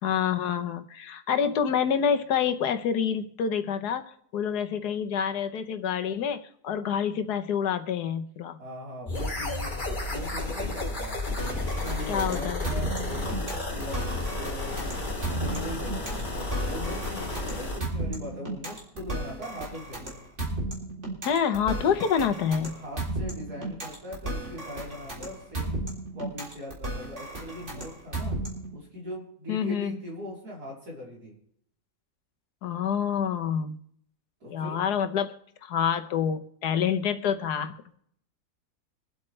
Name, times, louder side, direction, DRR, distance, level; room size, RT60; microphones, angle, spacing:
voice 1, 0.0-8.6 12.1-12.6 21.2-22.7 29.5-29.9 32.6-33.8 34.5-35.4 35.6-37.7, left 7 dB, 85° left, 9 dB, 1.5 m, -27 dB
voice 2, 8.6-11.2 11.6-14.8 15.3-20.0 22.7-25.8 26.1-28.4 28.7-31.3 34.4-35.0, left 1 dB, 75° right, -4 dB, 4.5 m, -40 dB
sound 1, 9.1-17.8, left 2 dB, 30° left, 2.8 m, -32 dB
sound 2, 11.4-28.8, right 2 dB, 45° right, 3.8 m, -34 dB
24.5 x 8.2 x 3.3 m, 0.68 s
omnidirectional pair, 1.7 m